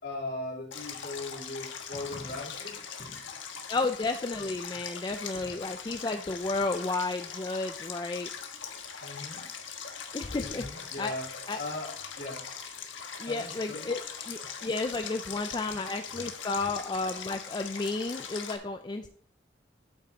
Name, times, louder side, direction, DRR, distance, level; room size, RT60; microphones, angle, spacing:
voice 1, 0.0-3.4 5.3-5.5 9.0-9.4 10.4-11.3 11.6-12.5 13.3-13.9 15.7-15.9 16.1-16.2, left 2 dB, 55° left, -5 dB, 3.6 m, -39 dB
Stream, 0.7-18.6, left 7 dB, 80° left, 1.3 m, -41 dB
voice 2, 3.7-8.3 10.1-11.6 13.2-19.1, left 3 dB, 25° left, 6 dB, 0.4 m, -32 dB
8.8 x 8.1 x 2.9 m, 0.62 s
head